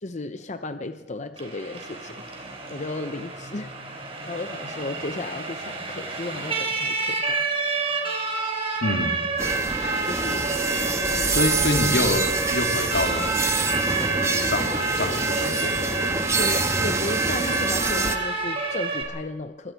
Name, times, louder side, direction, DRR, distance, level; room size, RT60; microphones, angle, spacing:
voice 1, 0.0-2.2 2.7-3.7 4.3-7.4 10.0-10.5 16.4-19.7, left 2 dB, 40° left, 9 dB, 0.8 m, -34 dB
Siren, 1.4-19.0, right 3 dB, 35° right, 4.3 m, -30 dB
voice 2, 8.8-9.1 11.3-13.4 14.2-15.7, left 1 dB, 85° left, 3 dB, 2.9 m, -26 dB
sound 1, 9.4-18.2, right 3 dB, 15° right, 1.4 m, -25 dB
26.0 x 24.0 x 4.6 m, 1.2 s
head